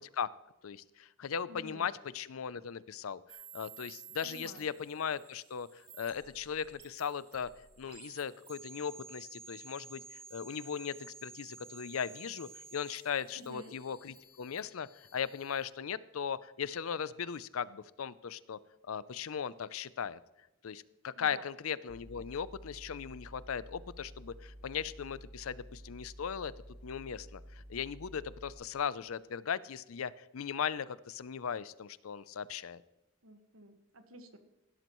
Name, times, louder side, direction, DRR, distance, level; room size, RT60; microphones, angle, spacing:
voice 1, 0.6-3.2 3.5-7.5 7.8-18.6 18.9-20.2 20.6-26.5 26.8-32.8, left 7 dB, 85° left, 18 dB, 0.5 m, -38 dB
voice 2, 1.5-1.9 4.2-4.7 13.3-13.7 21.1-21.4 33.2-34.4, right 1 dB, 90° right, 6 dB, 1.6 m, -50 dB
sound 1, 3.3-15.6, right 5 dB, 30° right, 2.8 m, -53 dB
sound 2, 21.9-28.5, equal, 10° right, 4.9 m, -51 dB
16.5 x 12.0 x 3.1 m, 1.0 s
head